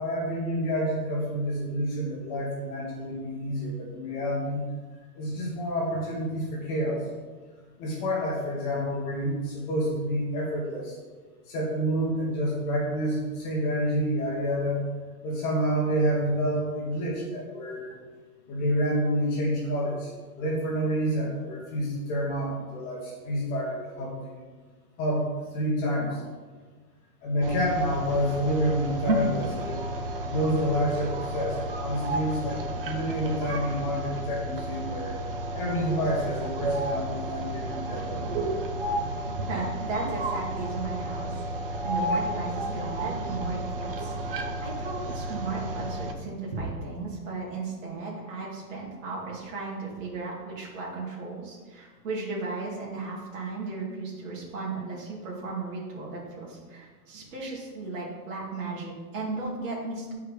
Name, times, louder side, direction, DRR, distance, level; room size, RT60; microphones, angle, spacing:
voice 1, 0.0-4.6 5.2-7.1 7.8-11.0 11.5-14.9 15.2-17.9 18.5-20.1 20.4-24.4 25.0-26.2 27.2-29.8 30.3-35.1 35.5-38.2, equal, 20° left, -4 dB, 1.2 m, -28 dB
sound 1, 27.4-46.1, right 1 dB, 35° right, 0.6 m, -32 dB
voice 2, 39.5-41.4 41.8-60.1, right 3 dB, 50° right, -5 dB, 2.6 m, -35 dB
8.8 x 4.8 x 5.0 m, 1.4 s
hypercardioid pair, 170°, 48 cm